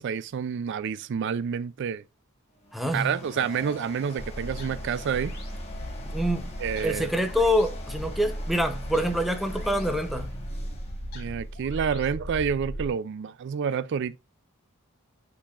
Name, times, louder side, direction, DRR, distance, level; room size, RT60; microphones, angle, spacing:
voice 1, 0.0-2.0 2.9-5.4 6.6-7.1 11.1-14.2, right 7 dB, 60° right, 0.4 m, -29 dB
sound 1, 2.5-11.7, left 3 dB, 30° left, 1.9 m, -45 dB
voice 2, 2.7-3.2 6.0-6.5 6.8-10.3, equal, ahead, 0.8 m, -26 dB
sound 2, 4.2-12.9, equal, 50° left, 2.4 m, -36 dB
8.3 x 5.7 x 2.4 m
head